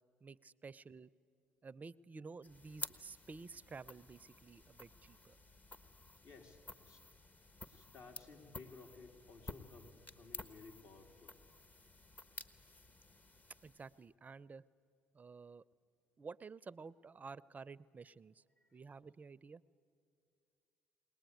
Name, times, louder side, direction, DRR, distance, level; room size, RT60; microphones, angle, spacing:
voice 1, 0.2-1.1 1.6-5.4 13.6-14.6 15.1-15.6 16.2-18.4 18.7-19.6, right 4 dB, 30° right, 19 dB, 0.5 m, -52 dB
sound 1, 2.4-14.1, left 2 dB, 30° left, 1.1 m, -53 dB
voice 2, 6.2-7.0 7.7-11.4 18.6-18.8, left 4 dB, 60° left, 3 dB, 2.7 m, -57 dB
21.5 x 19.0 x 9.3 m, 2.3 s
supercardioid pair, 70°, 5 cm